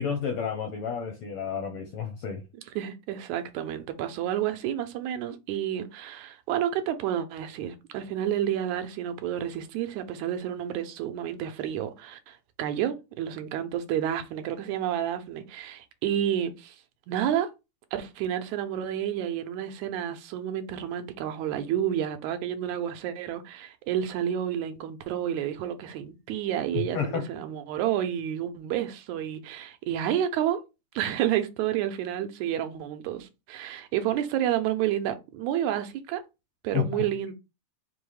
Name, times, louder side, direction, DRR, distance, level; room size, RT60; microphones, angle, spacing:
voice 1, 0.0-2.4 26.7-27.2 36.7-37.0, left 7 dB, 80° left, 1.3 m, -30 dB
voice 2, 2.8-16.8 17.1-17.5 17.9-30.6 31.0-36.2 36.6-37.3, right 10 dB, 80° right, 1.9 m, -30 dB
5.3 x 2.1 x 4.7 m
omnidirectional pair, 3.4 m